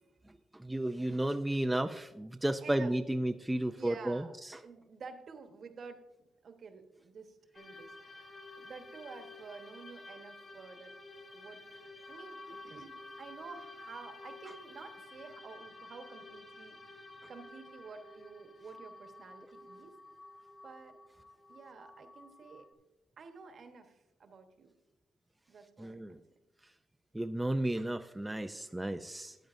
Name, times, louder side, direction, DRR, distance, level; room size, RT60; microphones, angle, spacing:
voice 1, 0.5-4.6 25.8-26.2 27.1-29.4, right 1 dB, 5° right, 7 dB, 0.3 m, -33 dB
voice 2, 2.6-2.9 3.6-6.0 6.4-10.9 11.3-16.8 17.3-19.9 20.6-21.0 21.5-22.7 23.2-24.7 25.5-26.2, right 5 dB, 50° right, 6 dB, 1.1 m, -50 dB
sound 1, 7.5-22.7, left 2 dB, 25° left, 1.1 m, -51 dB
14.0 x 9.2 x 2.5 m, 0.96 s
cardioid pair, 140°, 0 cm